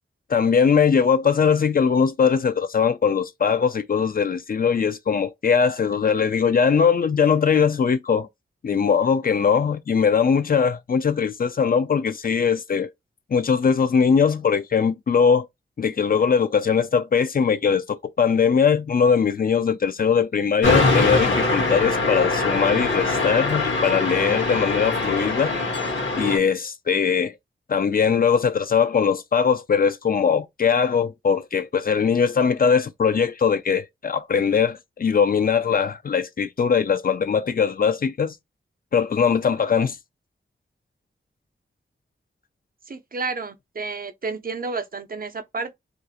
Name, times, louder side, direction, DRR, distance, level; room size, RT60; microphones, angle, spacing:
voice 1, 0.3-8.3 8.6-12.9 13.3-15.5 15.8-25.6 26.2-27.3 27.7-38.3 38.9-40.0, left 6 dB, 45° left, 0.4 m, -21 dB
sound 1, 20.6-26.4, left 2 dB, 65° left, 1.1 m, -22 dB
voice 2, 42.9-45.7, right 4 dB, 45° right, 0.5 m, -31 dB
2.4 x 2.0 x 2.7 m
cardioid pair, 55°, 21 cm